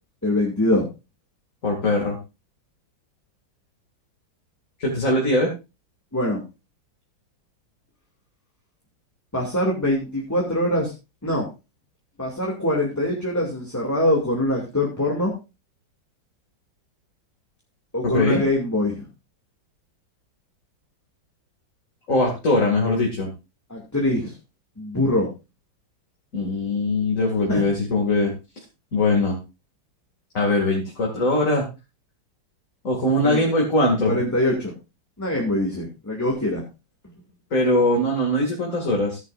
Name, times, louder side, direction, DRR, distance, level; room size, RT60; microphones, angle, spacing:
voice 1, 0.2-0.8 6.1-6.4 9.3-10.9 11.2-11.5 12.2-15.3 17.9-19.1 23.7-24.3 24.8-25.3 27.5-27.6 33.2-33.4 34.0-34.7 35.2-36.6, left 1 dB, 10° left, -2 dB, 2.2 m, -23 dB
voice 2, 1.6-2.2 4.8-5.5 18.0-18.4 22.1-23.3 26.3-28.3 28.9-29.4 30.3-31.7 32.8-34.2 37.5-39.2, left 2 dB, 40° left, -1 dB, 2.7 m, -21 dB
15.0 x 9.9 x 2.5 m, 0.28 s
omnidirectional pair, 2.1 m